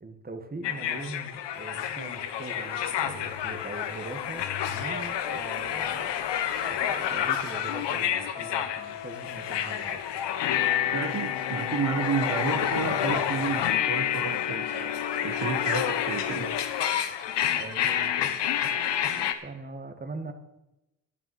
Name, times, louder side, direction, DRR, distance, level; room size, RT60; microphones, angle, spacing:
voice 1, 0.0-6.1 6.6-10.1 17.4-18.5 19.0-20.3, right 2 dB, 20° right, 7 dB, 1.7 m, -41 dB
sound 1, 0.6-19.3, left 9 dB, 90° left, 1.2 m, -29 dB
voice 2, 10.9-14.9 15.2-16.6, right 6 dB, 45° right, 5 dB, 1.1 m, -31 dB
11.0 x 9.1 x 7.9 m, 0.94 s
cardioid pair, 100°, 41 cm